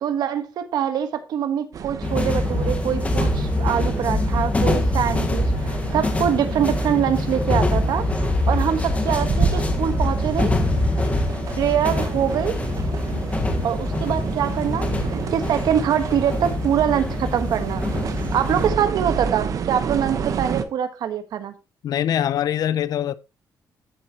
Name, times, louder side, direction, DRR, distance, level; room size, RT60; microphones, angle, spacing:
voice 1, 0.0-8.1 8.5-10.5 11.6-12.6 13.6-17.9 18.3-21.5, right 9 dB, 75° right, 1.4 m, -24 dB
sound 1, 1.7-20.6, right 6 dB, 50° right, 1.1 m, -30 dB
sound 2, 2.0-18.7, left 2 dB, 20° left, 1.6 m, -24 dB
voice 2, 21.8-23.1, left 10 dB, 65° left, 0.7 m, -23 dB
13.5 x 7.7 x 3.0 m
cardioid pair, 160°, 7 cm